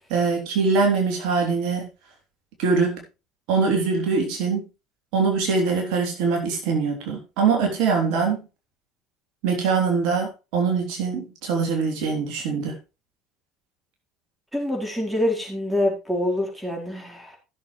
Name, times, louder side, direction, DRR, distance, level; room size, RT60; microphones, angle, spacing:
voice 1, 0.1-1.9 2.6-3.0 3.5-4.7 5.1-8.4 9.4-12.8, right 5 dB, 60° right, 2 dB, 3.3 m, -23 dB
voice 2, 14.5-17.4, left 1 dB, 5° right, 0 dB, 4.3 m, -25 dB
15.5 x 7.2 x 3.3 m, 0.29 s
figure-of-eight pair, 65°, 0 cm